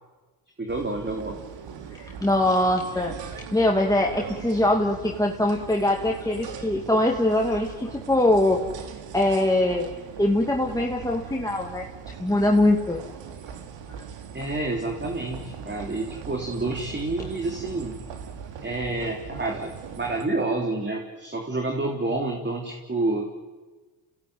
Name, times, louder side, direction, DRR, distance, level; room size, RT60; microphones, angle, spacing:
voice 1, 0.6-1.4 14.3-18.0 18.6-23.3, right 2 dB, 25° right, 2 dB, 3.5 m, -29 dB
sound 1, 0.7-20.2, right 7 dB, 70° right, 3.0 m, -40 dB
voice 2, 1.9-3.1 3.5-8.6 9.1-9.9 10.2-11.9 12.2-13.0, left 1 dB, 5° left, 0 dB, 2.6 m, -22 dB
28.0 x 17.5 x 9.6 m, 1.3 s
supercardioid pair, 65°, 46 cm